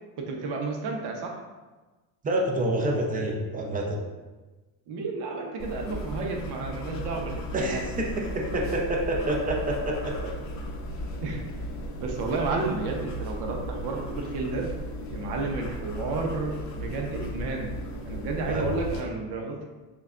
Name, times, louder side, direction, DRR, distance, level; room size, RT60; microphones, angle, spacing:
voice 1, 0.2-1.4 4.9-7.9 11.2-11.4 12.0-14.7 15.1-17.7 18.0-19.6, right 3 dB, 55° right, 1 dB, 0.8 m, -31 dB
voice 2, 2.2-4.0 7.5-10.3 18.5-18.7, right 1 dB, 20° right, 0 dB, 0.6 m, -28 dB
sound 1, 5.6-19.0, equal, 40° left, 0.7 m, -36 dB
6.1 x 2.3 x 2.4 m, 1.2 s
cardioid pair, 120°, 46 cm